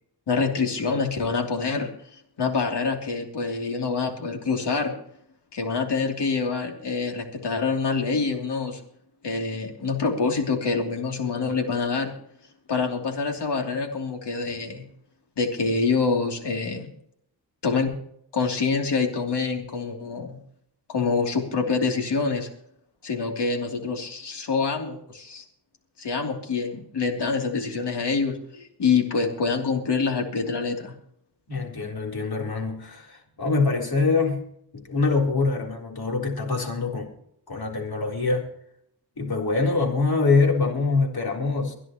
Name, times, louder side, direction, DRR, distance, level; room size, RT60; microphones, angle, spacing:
voice 1, 0.3-4.9 5.5-8.8 9.2-12.1 12.7-14.8 15.4-16.9 17.6-17.9 18.3-20.4 20.9-22.5 23.0-25.4 26.0-30.9, left 4 dB, 80° left, 2 dB, 3.0 m, -26 dB
voice 2, 31.5-34.5 34.8-37.1 37.5-38.5 39.2-41.7, left 3 dB, 60° left, 1 dB, 3.7 m, -24 dB
24.0 x 11.0 x 3.0 m, 0.70 s
cardioid pair, 70°, 41 cm